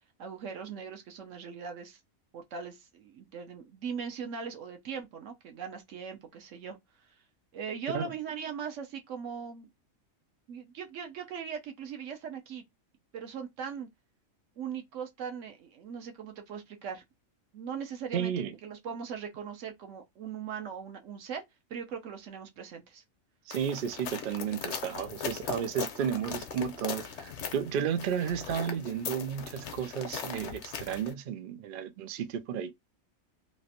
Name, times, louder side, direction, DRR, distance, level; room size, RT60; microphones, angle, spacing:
voice 1, 0.2-2.0 2.3-6.8 7.0-7.1 7.5-9.7 10.5-12.6 13.1-13.9 14.6-17.0 17.5-18.3 18.6-21.4 21.7-23.0, right 6 dB, 65° right, 1.1 m, -40 dB
voice 2, 18.1-18.6 23.5-32.7, right 8 dB, 80° right, 0.4 m, -33 dB
sound 1, 23.5-31.1, left 7 dB, 60° left, 0.9 m, -39 dB
3.2 x 2.5 x 2.7 m
omnidirectional pair, 1.4 m